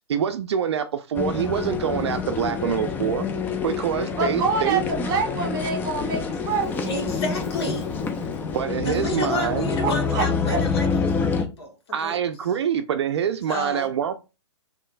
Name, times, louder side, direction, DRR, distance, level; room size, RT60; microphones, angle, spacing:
voice 1, 0.1-3.3 3.6-4.8 8.5-9.7 11.9-14.1, right 8 dB, 65° right, 0.4 m, -25 dB
sound 1, 1.1-11.4, left 5 dB, 10° left, 0.3 m, -27 dB
Aircraft, 2.4-11.2, left 5 dB, 75° left, 0.8 m, -44 dB
voice 2, 4.2-6.9 9.8-10.6, right 4 dB, 25° right, 1.4 m, -26 dB
voice 3, 6.9-7.8 8.8-11.7 12.0-12.2 13.5-13.9, left 1 dB, 60° left, 1.4 m, -30 dB
3.6 x 3.0 x 2.5 m
hypercardioid pair, 120°, 15 cm